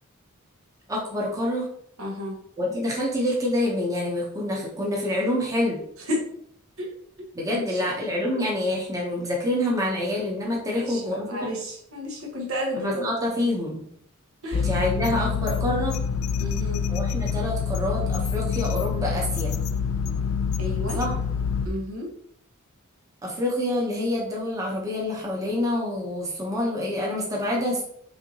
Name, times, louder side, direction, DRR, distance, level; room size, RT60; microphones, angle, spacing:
voice 1, 0.9-1.7 2.6-5.8 7.3-11.5 12.8-13.8 14.5-16.0 16.9-19.5 21.0-21.1 23.2-27.8, left 1 dB, 15° right, -3 dB, 0.8 m, -27 dB
voice 2, 2.0-2.4 6.1-6.2 6.8-6.9 7.5-7.8 10.7-13.0 14.4-14.7 16.4-16.9 20.6-21.0 21.6-22.1, left 1 dB, 75° right, -1 dB, 1.2 m, -32 dB
sound 1, 14.5-21.7, left 6 dB, 75° left, 0.4 m, -26 dB
5.6 x 2.8 x 2.8 m, 0.69 s
head